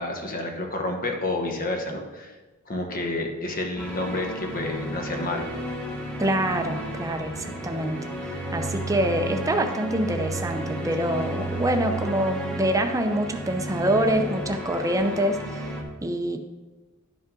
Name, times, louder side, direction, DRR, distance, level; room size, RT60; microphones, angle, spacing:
voice 1, 0.0-2.3 2.7-5.5, left 2 dB, 40° left, 3 dB, 1.1 m, -29 dB
sound 1, 3.8-15.8, right 1 dB, 5° left, 1.1 m, -33 dB
voice 2, 6.2-8.1 8.5-16.4, right 1 dB, 15° right, 5 dB, 0.6 m, -26 dB
11.5 x 5.4 x 3.8 m, 1.2 s
head